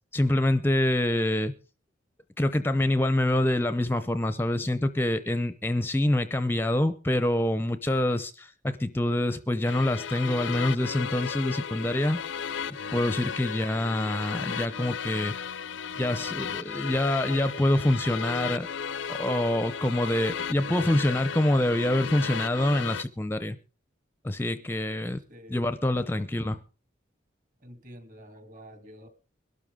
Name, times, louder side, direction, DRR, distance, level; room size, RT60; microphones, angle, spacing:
voice 1, 0.1-1.5 2.4-12.2 12.9-15.3 16.0-18.7 19.1-23.6 24.2-25.2 25.5-26.6, left 1 dB, 10° left, 0.6 m, -26 dB
sound 1, 9.7-23.0, left 7 dB, 85° left, 0.6 m, -35 dB
voice 2, 25.3-25.7 26.0-26.3 27.6-29.1, equal, 45° right, 3.0 m, -48 dB
22.0 x 12.5 x 3.7 m
head